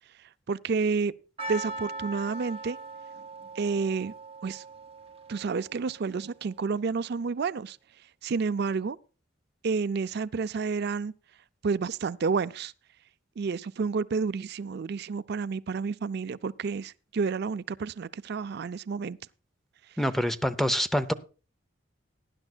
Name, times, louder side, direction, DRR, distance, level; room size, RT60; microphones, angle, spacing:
voice 1, 0.5-1.1 1.5-2.8 3.6-4.1 4.4-4.6 5.3-7.8 8.2-9.0 9.6-11.1 11.6-12.7 13.4-19.2, right 5 dB, 55° right, 0.4 m, -30 dB
Percussion, 1.4-6.3, right 2 dB, 30° right, 1.4 m, -40 dB
voice 2, 20.0-21.1, equal, ahead, 0.6 m, -26 dB
18.0 x 10.5 x 2.3 m
head